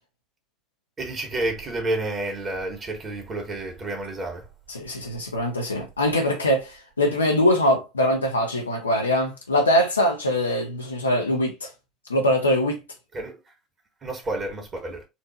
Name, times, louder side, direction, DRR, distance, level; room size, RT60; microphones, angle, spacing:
voice 1, 1.0-4.5 13.1-13.4 14.0-15.1, right 2 dB, 35° right, 1.9 m, -30 dB
voice 2, 4.7-11.7 12.1-12.8, left 1 dB, 85° left, 1.1 m, -22 dB
4.4 x 2.6 x 4.3 m
figure-of-eight pair, 65°, 0 cm